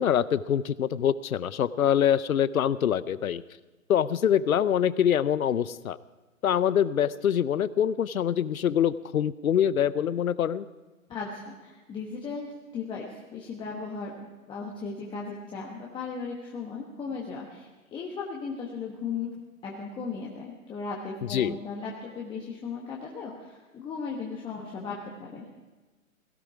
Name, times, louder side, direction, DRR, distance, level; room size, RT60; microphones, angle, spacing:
voice 1, 0.0-3.4 3.9-6.0 6.4-10.6 21.3-21.6, left 9 dB, 75° left, 17 dB, 0.7 m, -25 dB
voice 2, 11.1-19.3 19.6-25.5, left 5 dB, 10° left, -3 dB, 1.2 m, -37 dB
16.5 x 15.0 x 4.9 m, 1.2 s
hypercardioid pair, 140°, 42 cm